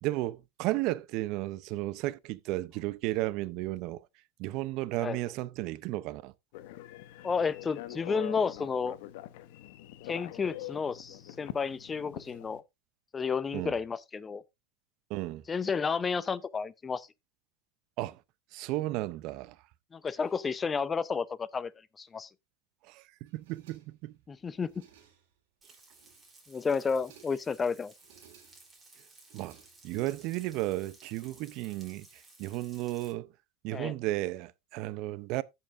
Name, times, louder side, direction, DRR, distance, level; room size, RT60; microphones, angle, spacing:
voice 1, 0.0-4.0 4.4-6.3 13.5-13.7 15.1-15.4 18.0-18.2 18.5-19.6 22.9-24.2 29.3-29.6 29.8-32.1 32.4-33.3 33.6-35.4, right 17 dB, 55° right, 0.6 m, -34 dB
Telephone, 6.5-12.6, left 15 dB, 65° left, 0.8 m, -44 dB
voice 2, 7.2-9.0 10.1-12.6 13.1-14.4 15.5-17.1 19.9-21.7 22.0-22.3 24.3-24.8 26.5-27.9 33.7-33.9, left 5 dB, 20° left, 0.7 m, -31 dB
sound 1, 23.3-24.1 24.5-25.4 25.8-26.4 26.8-27.5 27.9-28.8 29.2-30.1, right 9 dB, 75° right, 3.0 m, -61 dB
Frying (food), 25.6-33.1, right 2 dB, 15° right, 3.4 m, -57 dB
14.5 x 5.7 x 2.6 m
hypercardioid pair, 105°, 0 cm